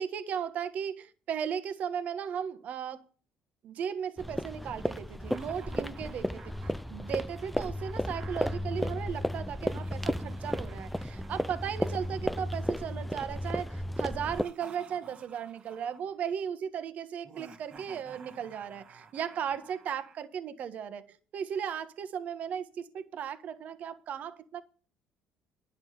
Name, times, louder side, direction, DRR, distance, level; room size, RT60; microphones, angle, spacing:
voice 1, 0.0-3.0 3.6-24.6, right 8 dB, 50° right, 1.4 m, -36 dB
sound 1, 4.2-14.4, equal, ahead, 0.4 m, -34 dB
Laughter, 5.2-8.6 9.6-12.9 14.1-16.1 17.2-20.2, right 5 dB, 35° right, 1.9 m, -54 dB
11.0 x 7.3 x 6.6 m
cardioid pair, 130°, 3 cm